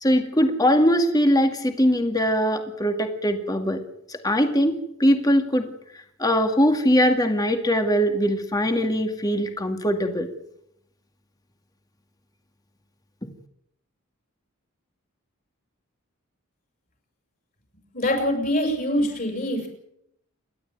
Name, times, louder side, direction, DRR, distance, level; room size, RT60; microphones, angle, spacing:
voice 1, 0.0-3.8 4.1-4.7 5.0-5.7 6.2-10.3, equal, 15° left, 5 dB, 2.1 m, -21 dB
voice 2, 17.9-19.7, left 1 dB, 40° left, 2 dB, 6.6 m, -24 dB
28.5 x 12.0 x 9.2 m, 0.75 s
head